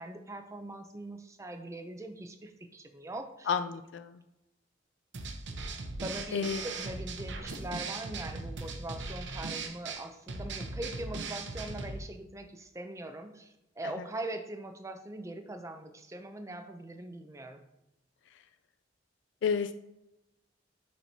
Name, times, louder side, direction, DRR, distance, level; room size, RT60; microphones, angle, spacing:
voice 1, 0.0-3.5 6.0-17.6, right 1 dB, 15° right, 7 dB, 0.5 m, -42 dB
voice 2, 3.5-4.2 6.3-6.6 19.4-19.7, left 6 dB, 70° left, 10 dB, 0.3 m, -30 dB
sound 1, 5.1-12.0, right 3 dB, 70° right, 0.7 m, -39 dB
9.1 x 4.3 x 2.8 m, 0.92 s
head